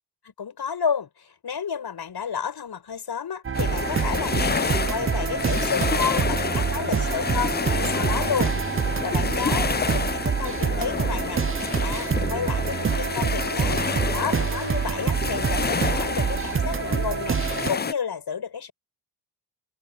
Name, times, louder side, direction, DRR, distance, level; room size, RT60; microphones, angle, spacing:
voice 1, 0.3-8.6 9.0-9.6 9.9-11.4 11.8-13.9 14.1-18.7, left 7 dB, 55° left, 7.3 m, -31 dB
sound 1, 3.4-17.7, right 6 dB, 25° right, 0.9 m, -26 dB
sound 2, 3.5-17.9, left 5 dB, 20° left, 0.7 m, -29 dB
sound 3, 3.9-12.3, equal, ahead, 6.7 m, -39 dB
supercardioid pair, 50°, 47 cm